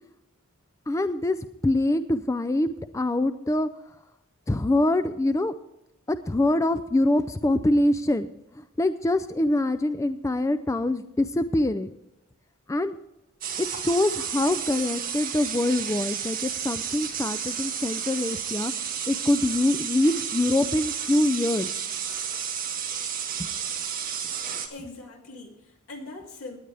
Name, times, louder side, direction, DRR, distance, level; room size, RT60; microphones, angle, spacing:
voice 1, 0.9-3.7 4.5-5.5 6.1-8.3 8.5-11.9 12.7-13.0 13.6-18.7 19.1-21.7 23.4-23.5, left 1 dB, 15° left, 11 dB, 0.3 m, -24 dB
sound 1, 13.4-24.7, right 8 dB, 40° right, 1.6 m, -32 dB
voice 2, 24.7-26.6, left 2 dB, 75° left, 1 dB, 2.7 m, -41 dB
18.0 x 9.8 x 3.4 m, 0.88 s
head